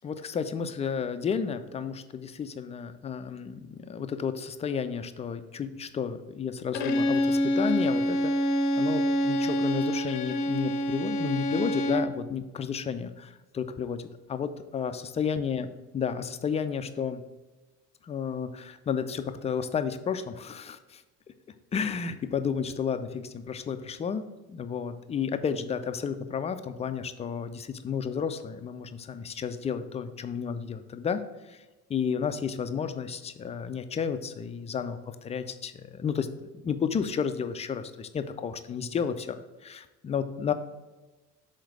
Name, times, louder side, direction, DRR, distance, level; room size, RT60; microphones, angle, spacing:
voice 1, 0.0-8.5 8.8-14.0 14.3-15.7 15.9-17.2 18.0-21.0 21.7-31.2 31.5-31.6 31.9-40.5, left 6 dB, 15° left, 9 dB, 0.3 m, -32 dB
Bowed string instrument, 6.7-12.2, equal, 75° left, 0.7 m, -26 dB
6.3 x 3.9 x 4.7 m, 1.2 s
figure-of-eight pair, 55°, 48 cm